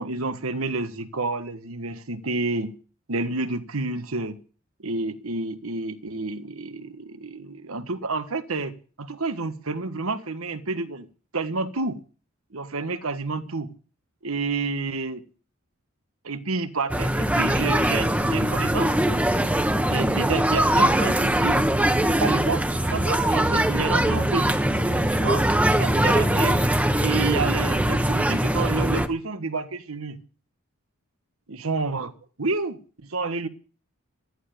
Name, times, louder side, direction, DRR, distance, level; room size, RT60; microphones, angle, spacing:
voice 1, 0.0-2.8 3.1-4.4 4.8-11.1 11.3-12.0 12.5-13.7 14.2-15.2 16.2-18.9 19.9-21.6 22.2-22.6 22.9-24.5 25.1-25.5 25.8-26.6 27.0-30.2 31.5-32.1 32.4-32.8 33.1-33.5, right 3 dB, 90° right, 11 dB, 1.4 m, -29 dB
sound 1, 16.9-29.1, right 1 dB, 5° right, 1.1 m, -22 dB
14.0 x 11.0 x 6.8 m, 0.40 s
head